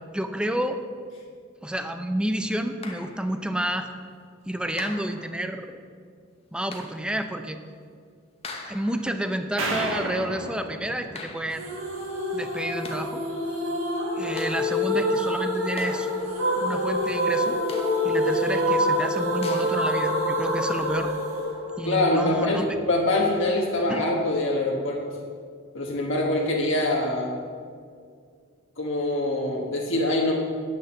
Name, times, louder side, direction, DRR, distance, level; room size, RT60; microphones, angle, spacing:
voice 1, 0.1-0.8 1.6-3.9 4.5-5.8 6.5-7.6 8.6-11.7 12.3-13.2 14.2-16.1 16.6-17.6 18.0-21.1 21.8-22.7 23.9-24.0, right 1 dB, 5° right, 7 dB, 0.5 m, -30 dB
sound 1, 2.8-3.4 4.8-5.5 6.7-7.1 8.4-9.2 11.1-11.8 12.6-13.2 14.4-15.0 15.8-16.5 17.7-18.3 19.4-20.0, left 3 dB, 30° left, 1.0 m, -41 dB
sound 2, 9.6-11.9, right 2 dB, 65° right, 1.6 m, -32 dB
sound 3, 11.6-22.5, equal, 80° right, 2.4 m, -26 dB
voice 2, 21.8-25.0 25.7-27.3 28.8-30.4, left 1 dB, 60° left, -2 dB, 1.2 m, -24 dB
9.3 x 6.4 x 7.0 m, 2.1 s
head